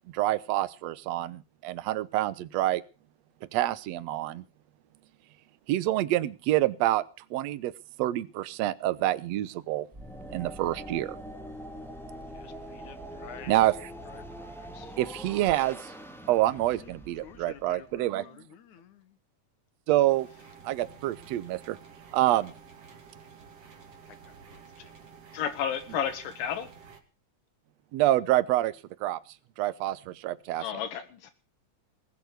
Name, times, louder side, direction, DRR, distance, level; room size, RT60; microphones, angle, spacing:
voice 1, 0.1-2.8 3.5-4.4 5.7-7.0 7.3-7.7 8.0-9.9 10.3-11.2 13.5-13.9 15.0-15.9 16.3-18.3 19.9-20.3 20.6-21.8 22.1-22.5 27.9-28.7 29.0-29.2 29.6-30.6, right 15 dB, 65° right, 1.8 m, -27 dB
sound 1, 9.9-18.0, equal, ahead, 1.7 m, -43 dB
voice 2, 12.3-13.5 14.1-15.0 16.6-19.2 24.1-24.9, left 8 dB, 65° left, 2.8 m, -51 dB
sound 2, 20.1-27.0, right 6 dB, 50° right, 3.6 m, -51 dB
voice 3, 25.3-26.7 30.6-31.3, left 8 dB, 85° left, 3.1 m, -32 dB
20.5 x 8.1 x 8.2 m
omnidirectional pair, 3.7 m